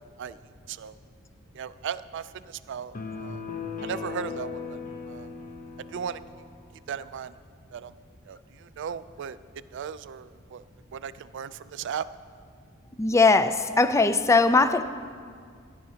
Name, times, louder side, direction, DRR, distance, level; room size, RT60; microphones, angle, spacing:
voice 1, 1.5-3.4 3.8-4.8 5.1-5.3 5.9-6.2 6.9-7.4 7.7-7.9 8.3-9.4 9.7-10.6 10.9-12.1, right 7 dB, 60° right, 15 dB, 0.3 m, -36 dB
sound 1, 2.9-6.5, left 5 dB, 40° left, 0.8 m, -37 dB
voice 2, 13.0-14.8, left 3 dB, 15° left, 12 dB, 0.3 m, -20 dB
17.0 x 10.5 x 2.8 m, 2.1 s
head